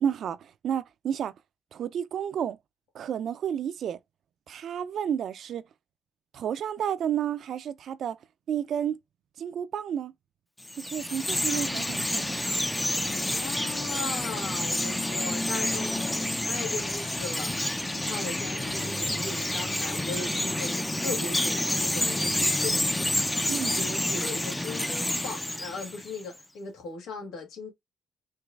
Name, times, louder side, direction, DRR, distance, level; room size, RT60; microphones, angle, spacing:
voice 1, 0.0-1.3 1.7-2.6 2.9-4.0 4.5-5.6 6.3-8.2 8.5-9.0 9.4-10.1 10.8-12.3 23.5-23.8, right 9 dB, 65° right, 0.5 m, -31 dB
Chirp tweet, 10.6-26.2, left 1 dB, 10° left, 0.5 m, -29 dB
voice 2, 13.0-17.5 17.9-23.1 23.4-27.7, left 4 dB, 85° left, 1.7 m, -38 dB
4.6 x 3.0 x 2.4 m
cardioid pair, 90°, 0 cm